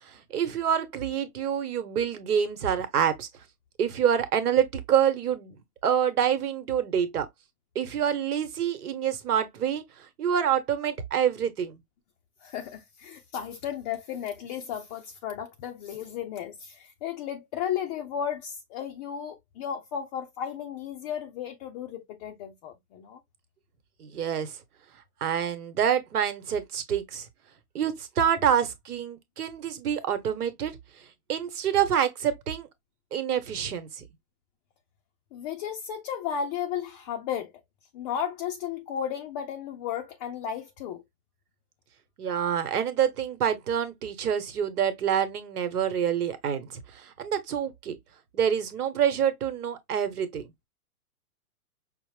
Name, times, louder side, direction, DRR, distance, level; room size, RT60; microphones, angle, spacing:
voice 1, 0.0-3.3 3.8-7.3 7.7-11.8 24.0-24.6 25.2-27.3 27.7-30.8 31.3-32.7 33.1-34.0 42.2-48.0 48.3-50.4, right 8 dB, 80° right, 1.2 m, -27 dB
voice 2, 12.4-23.2 35.3-37.5 37.9-41.0, left 8 dB, 30° left, 0.5 m, -34 dB
5.6 x 2.1 x 3.2 m
hypercardioid pair, 125°, 45 cm